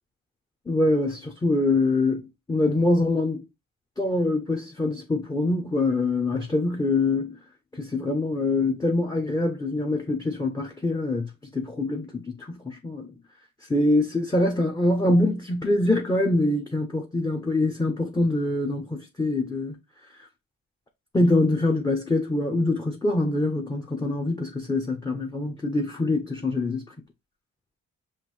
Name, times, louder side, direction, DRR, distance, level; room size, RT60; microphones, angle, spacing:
voice 1, 0.7-3.4 4.0-7.4 7.7-13.1 13.7-19.7 21.1-26.9, left 2 dB, 10° left, 0.6 m, -24 dB
5.8 x 2.6 x 3.0 m
cardioid pair, 90°, 30 cm